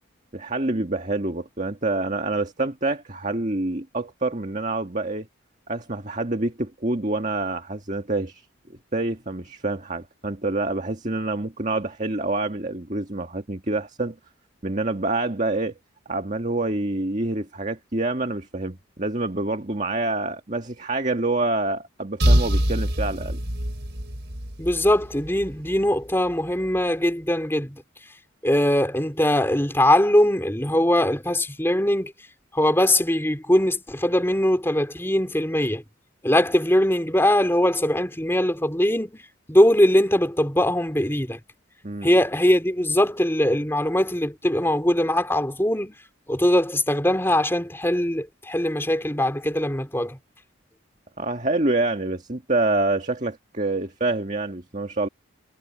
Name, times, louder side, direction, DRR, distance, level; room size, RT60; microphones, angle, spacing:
voice 1, 0.3-5.3 5.7-8.5 8.9-14.2 14.6-15.8 16.1-23.4 41.8-42.1 51.2-55.1, right 2 dB, 35° right, 1.9 m, -27 dB
sound 1, 22.2-25.9, equal, 55° right, 6.1 m, -24 dB
voice 2, 24.6-27.8 28.4-32.1 32.5-35.8 36.2-39.2 39.5-41.4 42.0-45.9 46.3-50.2, left 1 dB, 10° left, 3.2 m, -21 dB
head